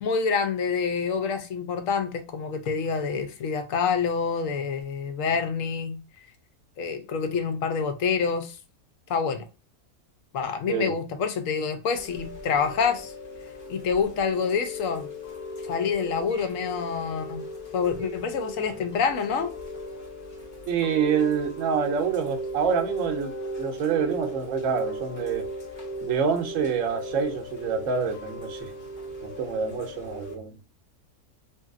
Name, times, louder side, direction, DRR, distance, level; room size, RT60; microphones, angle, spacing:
voice 1, 0.0-6.0 6.8-8.6 9.1-9.4 10.3-13.1 13.7-15.1 15.6-17.4 17.7-19.5, left 5 dB, 70° left, 0.9 m, -27 dB
Chime / Rain, 11.9-30.3, equal, 40° left, 0.7 m, -37 dB
voice 2, 20.7-25.5 26.0-28.7 29.2-30.6, right 6 dB, 65° right, 0.9 m, -27 dB
2.9 x 2.6 x 2.3 m
omnidirectional pair, 1.6 m